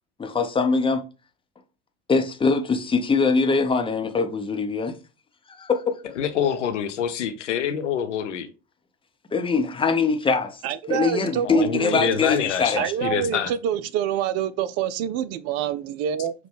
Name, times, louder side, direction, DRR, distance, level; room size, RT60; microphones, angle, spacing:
voice 1, 0.2-1.0 2.1-4.9 5.6-5.9 9.3-10.6 10.9-12.8, left 4 dB, 15° left, 0.7 m, -22 dB
voice 2, 6.2-8.5 11.4-13.5, left 9 dB, 80° left, 0.7 m, -26 dB
voice 3, 10.6-12.2 12.8-16.3, right 9 dB, 45° right, 0.4 m, -26 dB
6.0 x 2.2 x 3.5 m
hypercardioid pair, 75°, 35 cm